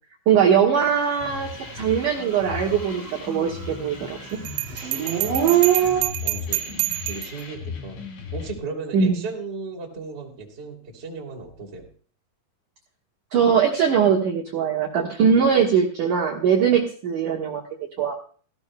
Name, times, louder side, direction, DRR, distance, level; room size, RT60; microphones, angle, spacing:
voice 1, 0.3-4.4 8.9-9.1 13.3-17.6 18.0-18.2, right 7 dB, 70° right, 0 dB, 1.9 m, -21 dB
sound 1, 1.2-8.5, left 6 dB, 70° left, 4.9 m, -37 dB
Dog / Siren, 1.7-1.8 2.2-3.7 3.9-6.0, right 10 dB, 50° right, 2.8 m, -22 dB
Bell, 4.5-7.4, right 18 dB, 85° right, 3.3 m, -28 dB
voice 2, 5.5-5.9 6.2-11.9, right 4 dB, 20° right, 1 dB, 1.6 m, -36 dB
17.5 x 16.5 x 2.2 m, 0.43 s
omnidirectional pair, 5.8 m